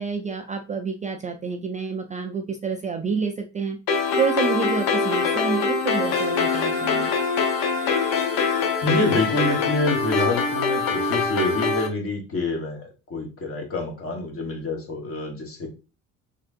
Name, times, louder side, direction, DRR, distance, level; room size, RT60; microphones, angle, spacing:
voice 1, 0.0-3.8 4.1-7.1, right 5 dB, 25° right, 4 dB, 0.3 m, -28 dB
sound 1, 3.9-11.9, left 4 dB, 75° left, 0.8 m, -23 dB
voice 2, 8.8-15.7, left 2 dB, 40° left, 2 dB, 1.1 m, -27 dB
3.5 x 2.6 x 2.4 m, 0.30 s
supercardioid pair, 90°, 34 cm